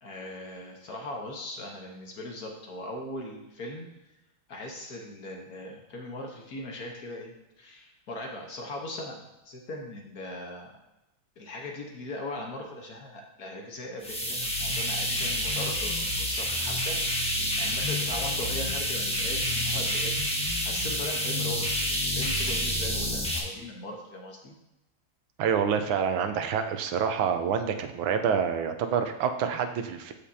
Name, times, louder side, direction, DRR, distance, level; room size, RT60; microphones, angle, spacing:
voice 1, 0.0-3.9 4.5-10.8 11.4-20.1 20.4-24.5, left 1 dB, 55° left, 0 dB, 1.5 m, -39 dB
sound 1, 14.0-23.4, equal, 5° left, 0.7 m, -28 dB
voice 2, 25.4-30.1, right 7 dB, 85° right, 7 dB, 1.5 m, -27 dB
14.0 x 5.0 x 2.8 m, 0.92 s
omnidirectional pair, 2.2 m